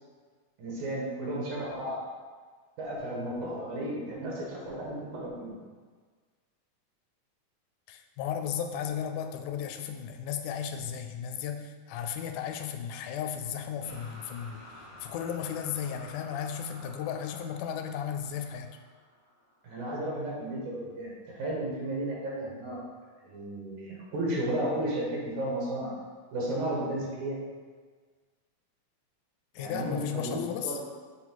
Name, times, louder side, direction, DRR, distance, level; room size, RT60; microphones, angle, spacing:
voice 1, 0.6-2.0 2.8-5.6 19.6-22.8 23.2-25.9 26.3-27.4 29.6-30.8, right 1 dB, 80° right, -4 dB, 2.9 m, -33 dB
voice 2, 7.9-14.6 15.0-18.7 29.6-30.8, left 8 dB, 85° left, 6 dB, 2.0 m, -35 dB
sound 1, 13.8-19.9, left 1 dB, 60° left, 0.8 m, -51 dB
6.3 x 4.3 x 4.5 m, 1.5 s
omnidirectional pair, 3.5 m